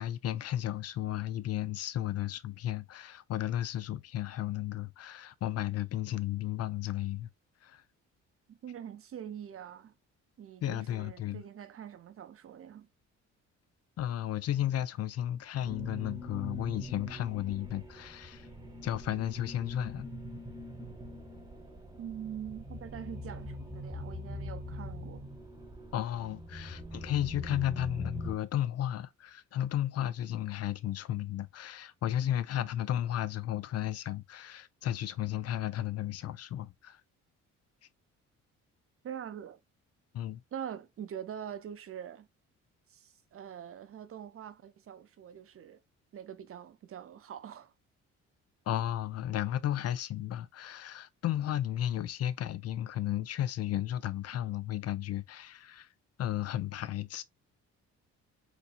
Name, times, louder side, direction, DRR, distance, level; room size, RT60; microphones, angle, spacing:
voice 1, 0.0-7.3 7.6-7.8 10.6-11.4 14.0-18.5 18.8-20.1 25.9-37.0 40.1-40.4 48.7-55.9 56.2-57.2, left 12 dB, 55° left, 0.5 m, -34 dB
voice 2, 8.5-9.9 10.4-12.9 22.0-25.3 39.0-39.6 40.5-42.3 42.9-45.8 46.1-47.7, right 9 dB, 45° right, 0.6 m, -44 dB
sound 1, 15.6-28.4, left 1 dB, 10° right, 1.0 m, -43 dB
4.1 x 2.9 x 2.4 m
cardioid pair, 90°, 30 cm